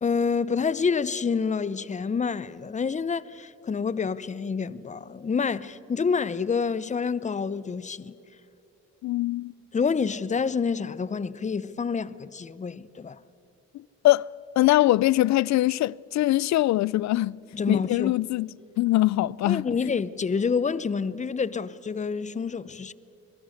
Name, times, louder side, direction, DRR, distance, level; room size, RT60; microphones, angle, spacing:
voice 1, 0.0-8.1 9.7-13.2 17.5-18.1 19.4-22.9, left 5 dB, 25° left, 0.7 m, -28 dB
voice 2, 9.0-9.5 14.0-14.3 14.6-17.4 17.7-18.5 18.8-19.7, left 16 dB, 65° left, 0.4 m, -22 dB
26.5 x 21.0 x 6.5 m
cardioid pair, 90°, 30 cm